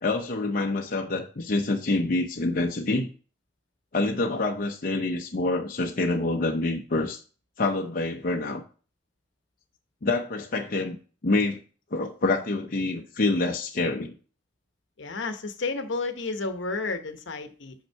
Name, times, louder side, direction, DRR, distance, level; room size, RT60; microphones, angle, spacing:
voice 1, 0.0-3.1 3.9-7.2 7.6-8.6 10.0-11.0 11.2-11.6 11.9-14.1, left 2 dB, 50° left, 2 dB, 0.7 m, -26 dB
voice 2, 15.0-17.7, left 3 dB, 70° left, 7 dB, 0.9 m, -31 dB
6.5 x 5.5 x 4.5 m, 0.38 s
head